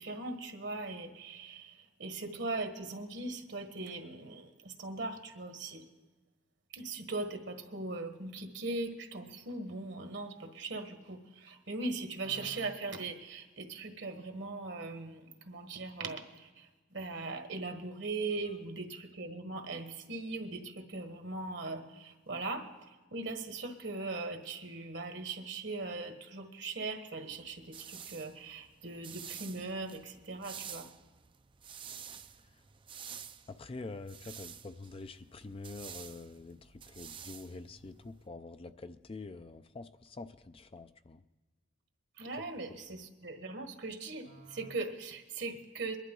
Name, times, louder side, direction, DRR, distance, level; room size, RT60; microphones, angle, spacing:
voice 1, 0.0-5.8 6.7-30.9 42.2-46.0, right 3 dB, 65° right, 6 dB, 1.5 m, -40 dB
sound 1, 27.3-38.3, right 8 dB, 25° right, 0.5 m, -50 dB
voice 2, 33.5-41.2 42.9-43.0, left 3 dB, 30° left, 10 dB, 0.5 m, -46 dB
22.5 x 11.5 x 3.9 m, 1.2 s
head